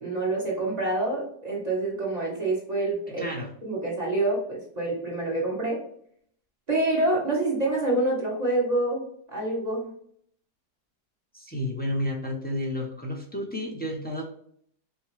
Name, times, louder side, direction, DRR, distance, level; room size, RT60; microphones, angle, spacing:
voice 1, 0.0-3.2 3.6-5.8 6.7-9.0 9.3-9.9, right 2 dB, 25° right, -4 dB, 1.3 m, -27 dB
voice 2, 3.1-3.5 11.3-14.2, left 1 dB, 10° left, -1 dB, 0.4 m, -31 dB
6.6 x 2.3 x 3.3 m, 0.65 s
omnidirectional pair, 1.9 m